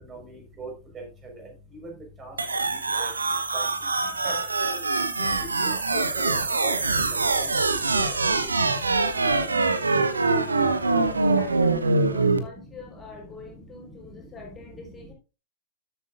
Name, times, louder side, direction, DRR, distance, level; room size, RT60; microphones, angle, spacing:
voice 1, 0.1-0.7 0.9-1.0 2.2-2.3 2.7-3.1 3.5-3.6 4.2-4.3 5.2-5.3 6.2-6.3 6.6-6.7 7.4-7.5 7.9-8.1, right 3 dB, 25° right, 2 dB, 4.5 m, -39 dB
sound 1, 2.4-12.4, right 3 dB, 75° right, 1.0 m, -24 dB
voice 2, 11.0-15.1, left 4 dB, 20° left, 0 dB, 3.8 m, -45 dB
13.0 x 8.1 x 2.5 m, 0.29 s
figure-of-eight pair, 90°, 0 cm